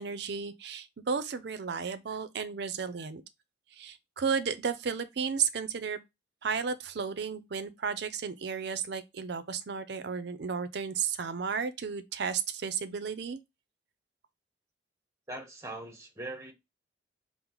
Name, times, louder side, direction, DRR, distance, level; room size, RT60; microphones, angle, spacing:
voice 1, 0.0-3.2 3.7-6.0 6.4-13.4, right 6 dB, 60° right, 0.5 m, -33 dB
voice 2, 15.3-16.5, right 2 dB, 15° right, 0.9 m, -41 dB
4.4 x 2.0 x 3.8 m
head